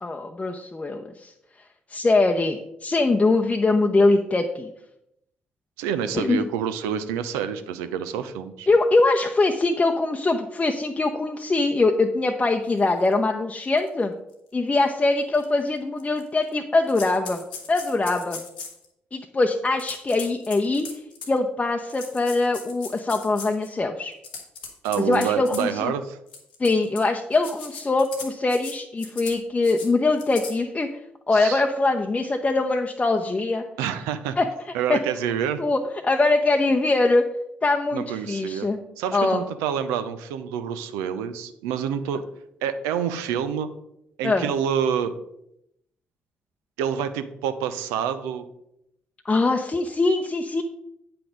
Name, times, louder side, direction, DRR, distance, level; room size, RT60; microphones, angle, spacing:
voice 1, 0.0-1.3 1.9-4.7 6.1-6.4 8.7-14.1 14.5-17.4 17.7-18.4 19.1-24.1 25.0-25.9 26.6-30.9 31.3-33.6 34.4-34.5 34.9-35.0 35.6-37.3 37.6-38.8 39.1-39.4 44.2-44.5 49.2-50.6, left 3 dB, 25° left, 3 dB, 0.7 m, -22 dB
voice 2, 5.8-8.7 24.8-26.2 31.3-31.6 33.8-34.4 34.7-35.6 37.9-38.7 39.0-42.2 42.6-43.7 44.2-45.1 46.8-48.4, right 8 dB, 70° right, 10 dB, 0.6 m, -27 dB
sound 1, 13.0-13.1 13.8-13.9 14.3-14.4 15.3-15.4 16.0-16.5 16.9-18.8 19.8-21.4 21.9-23.7 24.1-25.6 26.3-27.0 27.3-28.7 29.0-29.4 29.6-29.9 30.2-30.5, left 5 dB, 80° left, 1.0 m, -39 dB
8.7 x 5.9 x 5.1 m, 0.80 s
figure-of-eight pair, 40°, 5 cm